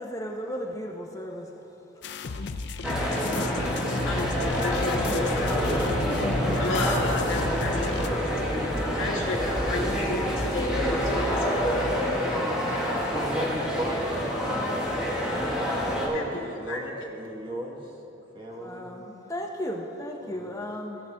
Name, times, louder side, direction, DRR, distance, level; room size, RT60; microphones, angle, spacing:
voice 1, 0.0-1.6 18.6-21.0, equal, 15° left, 0 dB, 0.7 m, -35 dB
sound 1, 2.0-8.1, left 4 dB, 55° left, 0.4 m, -34 dB
sound 2, 2.8-16.1, equal, 5° right, 1.5 m, -27 dB
voice 2, 3.2-3.7 4.0-6.3 6.6-11.9 16.1-17.0, left 2 dB, 80° left, -1 dB, 1.5 m, -33 dB
sound 3, 4.4-11.8, equal, 45° right, 1.1 m, -35 dB
voice 3, 13.1-14.9 15.9-17.8 18.3-18.9 20.2-20.5, right 1 dB, 25° right, -1 dB, 1.2 m, -35 dB
17.0 x 6.6 x 3.4 m, 2.9 s
head